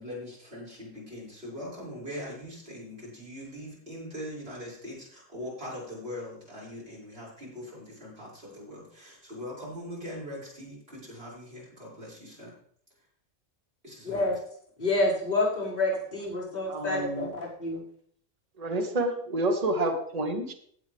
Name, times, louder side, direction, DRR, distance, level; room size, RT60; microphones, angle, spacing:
voice 1, 0.0-12.5 13.8-14.3, left 1 dB, 50° right, -7 dB, 6.3 m, -41 dB
voice 2, 14.0-14.4 14.8-17.8, left 2 dB, 40° left, -10 dB, 5.6 m, -28 dB
voice 3, 16.7-17.3 18.6-20.5, right 2 dB, 30° right, 4 dB, 1.3 m, -29 dB
16.5 x 8.3 x 3.5 m, 0.63 s
omnidirectional pair, 1.3 m